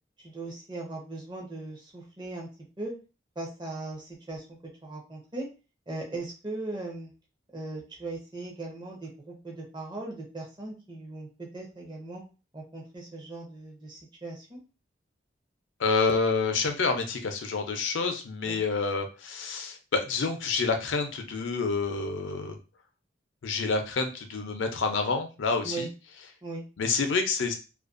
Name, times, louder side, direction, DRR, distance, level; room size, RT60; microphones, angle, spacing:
voice 1, 0.2-2.5 2.8-2.9 3.4-5.5 5.9-7.1 7.5-12.2 12.5-14.6 18.4-18.8 25.6-25.9 26.4-26.6, right 2 dB, 25° right, -2 dB, 0.6 m, -39 dB
voice 2, 15.8-22.6 23.4-25.9 26.8-27.6, left 4 dB, 80° left, 6 dB, 0.5 m, -28 dB
2.4 x 2.2 x 2.4 m, 0.32 s
head